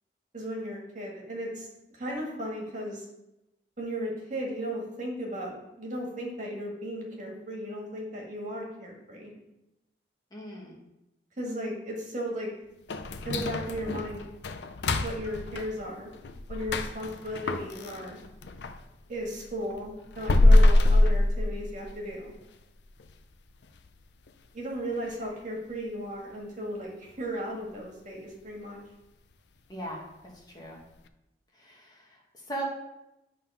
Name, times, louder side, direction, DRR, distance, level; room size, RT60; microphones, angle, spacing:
voice 1, 0.3-1.7 2.0-3.0 3.8-9.3 11.4-12.5 13.2-14.2 15.0-16.1 16.5-18.2 19.1-22.3 24.5-28.8, equal, 45° right, -2 dB, 2.0 m, -35 dB
voice 2, 10.3-10.8 25.2-25.3 29.7-30.0 30.5-30.8 31.5-32.6, right 1 dB, 20° left, -3 dB, 1.5 m, -39 dB
sound 1, 12.9-18.8 19.2-22.0 22.4-22.5 23.0-23.1 23.6-23.9 24.3-24.4 24.9-25.0, left 1 dB, 75° left, 0.5 m, -24 dB
9.5 x 3.8 x 5.6 m, 0.92 s
head